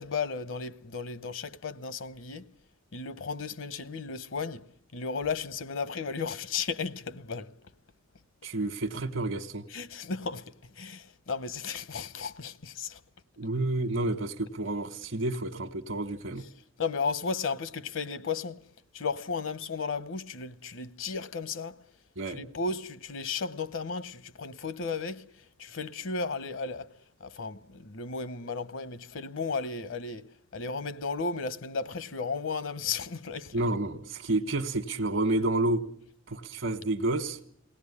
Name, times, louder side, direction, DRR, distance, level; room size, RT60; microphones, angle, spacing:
voice 1, 0.0-2.5 2.9-7.5 9.7-13.0 16.8-18.7 18.9-21.8 22.3-33.6, left 4 dB, 70° left, 0.8 m, -34 dB
voice 2, 8.4-9.7 13.4-16.4 22.2-22.4 33.5-35.8 36.3-37.4, right 2 dB, 70° right, 1.3 m, -30 dB
22.0 x 18.0 x 9.7 m
head